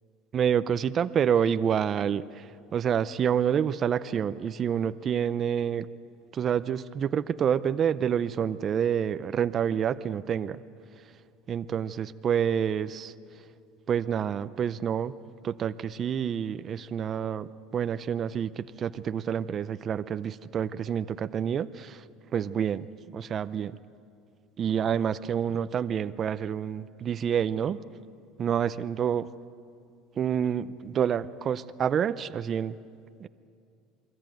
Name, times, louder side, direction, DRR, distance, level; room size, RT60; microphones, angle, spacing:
voice 1, 0.3-2.5 2.7-5.9 6.3-10.6 11.5-13.1 13.9-15.1 15.4-22.0 22.3-22.9 23.1-23.8 24.6-27.8 28.4-29.3 30.2-32.8 33.2-33.3, right 8 dB, 30° right, 12 dB, 0.6 m, -28 dB
28.5 x 22.0 x 9.2 m, 2.4 s
cardioid pair, 150°, 0 cm